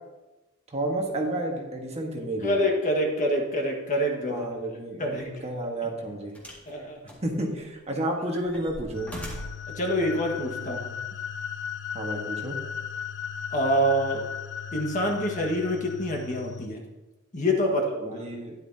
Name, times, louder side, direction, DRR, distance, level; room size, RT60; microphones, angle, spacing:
voice 1, 0.7-2.6 4.3-6.3 7.2-9.1 11.9-12.6 18.0-18.5, right 1 dB, 30° right, 0 dB, 1.5 m, -31 dB
voice 2, 2.4-4.5 5.0-5.3 6.7-7.0 9.7-10.9 13.5-14.3 14.7-16.8 17.3-18.2, equal, 35° left, 1 dB, 1.6 m, -26 dB
sound 1, 6.3-6.7 7.1-7.8 8.2-9.7 10.6-10.7, equal, 5° left, 2.1 m, -41 dB
sound 2, 8.9-16.7, left 7 dB, 60° left, 0.6 m, -36 dB
12.5 x 10.5 x 2.8 m, 1.1 s
head